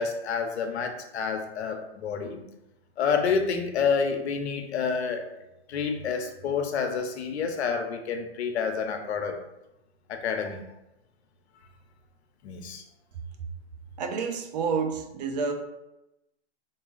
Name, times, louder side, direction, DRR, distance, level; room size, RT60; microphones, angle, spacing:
voice 1, 0.0-2.4 3.0-5.3 5.7-9.4 10.1-10.6 12.4-12.8, left 6 dB, 70° left, 5 dB, 0.8 m, -28 dB
voice 2, 14.0-15.5, right 5 dB, 40° right, 5 dB, 0.5 m, -29 dB
3.9 x 2.3 x 3.8 m, 0.93 s
hypercardioid pair, 150°, 34 cm